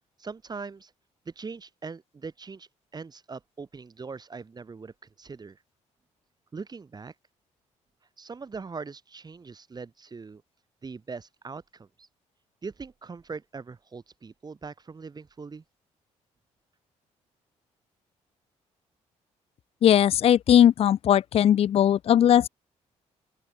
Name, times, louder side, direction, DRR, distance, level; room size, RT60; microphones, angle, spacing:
voice 1, 0.2-0.9 1.3-5.6 6.5-7.1 8.2-10.4 10.8-12.1 12.6-15.6, right 4 dB, 30° right, 4.1 m, -41 dB
voice 2, 19.8-22.5, left 10 dB, 50° left, 0.4 m, -19 dB
open air
cardioid pair, 90°, 13 cm